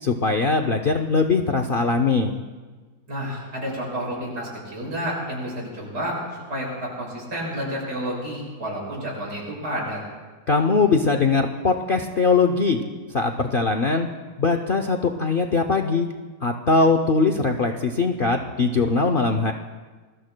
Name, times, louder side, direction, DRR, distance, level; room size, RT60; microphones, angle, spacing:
voice 1, 0.0-2.3 10.5-12.8 13.1-14.1 14.4-16.1 16.4-19.5, left 4 dB, 55° left, 5 dB, 0.6 m, -21 dB
voice 2, 3.1-10.0, equal, 75° right, -4 dB, 7.1 m, -30 dB
28.0 x 22.0 x 2.2 m, 1.4 s
omnidirectional pair, 1.7 m